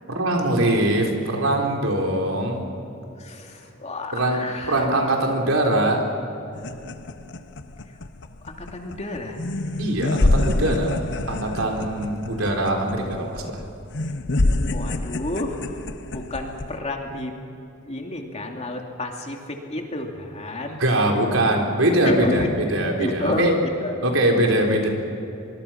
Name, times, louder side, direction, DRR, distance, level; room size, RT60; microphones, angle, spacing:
voice 1, 0.1-2.7 4.1-4.4 4.7-6.0 9.8-11.0 11.3-13.4 20.8-22.4 22.7-23.5 24.0-24.9, right 1 dB, 80° right, 2 dB, 4.0 m, -22 dB
voice 2, 3.2-4.9 7.9-8.0 8.4-9.4 14.7-15.8 16.1-17.3 17.8-20.8 22.0-22.5 23.0-23.9 24.4-24.8, left 2 dB, 35° left, 2 dB, 2.6 m, -30 dB
psychotic laugh, 6.5-16.8, left 2 dB, 60° left, 1.0 m, -27 dB
24.5 x 24.0 x 5.9 m, 2.9 s
head